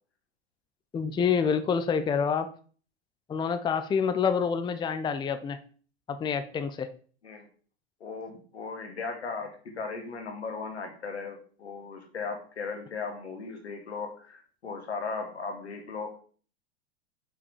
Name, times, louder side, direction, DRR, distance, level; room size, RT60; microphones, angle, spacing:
voice 1, 0.9-2.5 3.3-5.6 6.1-6.9, left 6 dB, 15° left, 10 dB, 0.5 m, -27 dB
voice 2, 8.0-16.2, left 4 dB, 90° left, 4 dB, 1.9 m, -37 dB
5.6 x 4.9 x 4.8 m, 0.43 s
hypercardioid pair, 105°, 32 cm